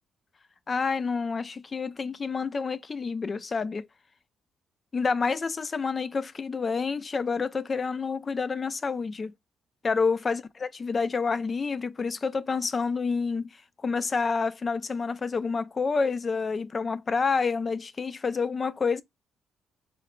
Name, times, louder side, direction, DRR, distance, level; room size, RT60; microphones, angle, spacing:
voice 1, 0.7-3.9 4.9-9.3 9.8-13.5 13.8-19.0, left 4 dB, 35° left, 0.3 m, -28 dB
3.2 x 2.2 x 3.5 m
cardioid pair, 90°, 0 cm